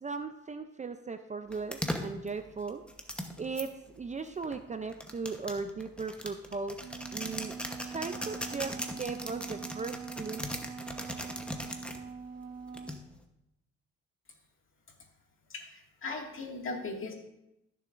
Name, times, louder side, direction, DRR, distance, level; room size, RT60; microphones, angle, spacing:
voice 1, 0.0-2.8 3.4-6.8 7.1-7.5 7.8-10.4, right 4 dB, 25° right, 8 dB, 0.5 m, -37 dB
sound 1, 1.5-3.6 4.4-12.0 12.7-13.2, left 1 dB, 5° left, 1.0 m, -39 dB
Wind instrument woodwind instrument, 6.8-13.0, right 6 dB, 60° right, 0.9 m, -43 dB
voice 2, 15.5-17.1, left 3 dB, 45° left, 1 dB, 2.0 m, -38 dB
14.5 x 6.9 x 2.5 m, 0.86 s
cardioid pair, 90°, 30 cm